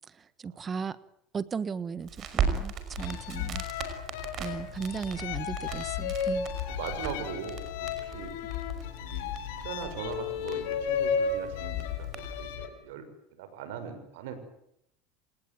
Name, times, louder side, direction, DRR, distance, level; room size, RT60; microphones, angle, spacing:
voice 1, 0.4-1.0 1.3-3.6 4.4-6.5, right 6 dB, 30° right, 16 dB, 1.3 m, -36 dB
Crackle, 2.0-12.6, right 6 dB, 45° right, 5.5 m, -38 dB
sound 1, 3.0-12.7, left 7 dB, 80° left, 4.2 m, -34 dB
voice 2, 4.9-5.7 6.7-8.3 9.0-13.1 13.4-14.4, right 7 dB, 80° right, 10 dB, 6.1 m, -41 dB
27.0 x 19.5 x 9.4 m, 0.76 s
supercardioid pair, 100°, 0 cm